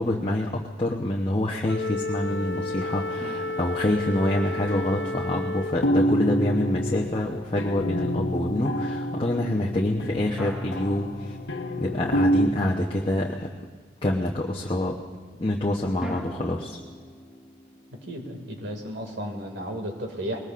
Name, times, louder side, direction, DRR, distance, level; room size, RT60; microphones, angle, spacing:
voice 1, 0.0-11.4 11.8-13.5 14.0-15.0 15.4-16.8, left 1 dB, 30° left, -2 dB, 0.9 m, -26 dB
Wind instrument woodwind instrument, 1.7-6.0, left 2 dB, 70° left, 0.6 m, -32 dB
sound 1, 2.3-3.8 4.7-12.5, equal, 90° left, 1.1 m, -28 dB
sound 2, 3.2-6.6 10.4-12.4 16.0-19.1, equal, 5° right, 1.2 m, -44 dB
voice 2, 18.1-20.4, equal, 80° right, 2 dB, 2.3 m, -33 dB
22.0 x 19.5 x 2.5 m, 1.5 s
head